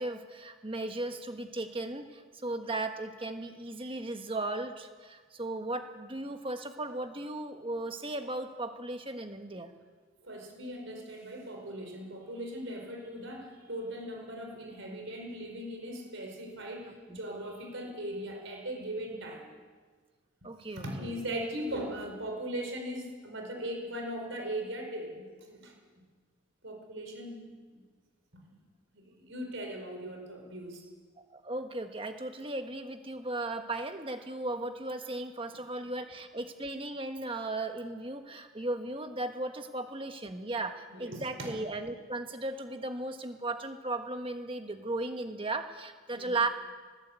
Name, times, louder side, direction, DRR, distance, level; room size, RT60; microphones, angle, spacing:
voice 1, 0.0-9.7 17.1-17.2 20.4-21.2 31.3-46.5, right 2 dB, 25° right, 6 dB, 1.4 m, -36 dB
voice 2, 10.2-19.5 20.8-25.7 26.6-27.8 28.4-28.5 28.9-30.8 40.9-41.5 46.1-46.3, right 1 dB, 65° right, 3 dB, 4.9 m, -39 dB
19.5 x 15.5 x 8.5 m, 1.5 s
head